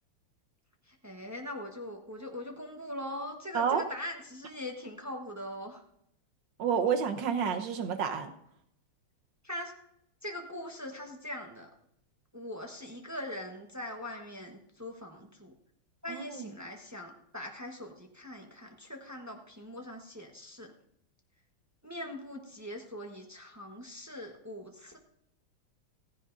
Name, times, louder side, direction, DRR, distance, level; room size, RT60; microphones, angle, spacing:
voice 1, 0.9-5.8 9.4-9.7 10.2-11.7 12.3-15.5 16.0-20.7 21.8-25.0, left 1 dB, 15° right, 2 dB, 0.6 m, -41 dB
voice 2, 6.6-8.3 16.1-16.5, right 7 dB, 65° right, 6 dB, 1.7 m, -29 dB
16.0 x 15.0 x 2.6 m, 0.76 s
omnidirectional pair, 2.3 m